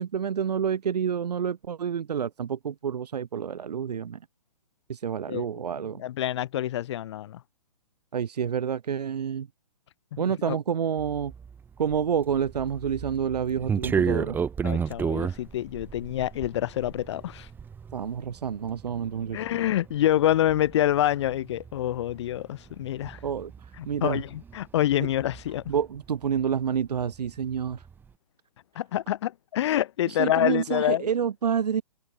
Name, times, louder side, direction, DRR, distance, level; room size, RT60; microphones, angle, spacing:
voice 1, 0.0-4.2 4.9-6.0 8.1-9.5 10.2-11.3 11.8-14.4 17.9-19.4 23.2-23.5 23.9-24.2 25.0-25.1 25.7-27.8 30.1-31.8, right 7 dB, 70° right, 0.7 m, -28 dB
voice 2, 6.0-7.4 10.2-10.6 14.6-17.5 19.3-23.2 23.8-25.6 28.8-31.1, left 12 dB, 45° left, 0.7 m, -27 dB
sound 1, 11.0-26.5 26.8-28.0, right 6 dB, 10° right, 1.0 m, -34 dB
figure-of-eight pair, 135°, 21 cm